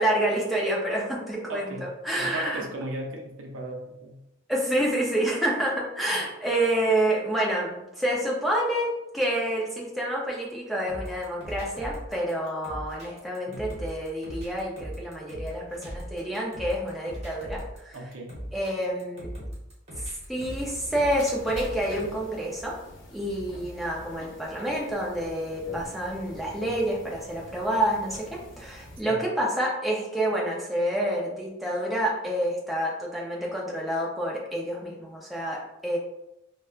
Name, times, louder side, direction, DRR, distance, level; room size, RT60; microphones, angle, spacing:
voice 1, 0.0-2.6 4.5-18.0 18.5-19.3 20.0-22.8 23.1-36.0, right 1 dB, ahead, -4 dB, 0.5 m, -28 dB
voice 2, 1.5-1.9 2.2-4.2 13.5-13.6 17.9-18.3 29.0-29.1, right 1 dB, 80° right, 0 dB, 0.6 m, -36 dB
sound 1, 10.9-22.0, equal, 30° right, 1.1 m, -39 dB
sound 2, 20.3-29.0, left 1 dB, 65° left, 0.6 m, -45 dB
4.1 x 2.2 x 2.4 m, 0.88 s
head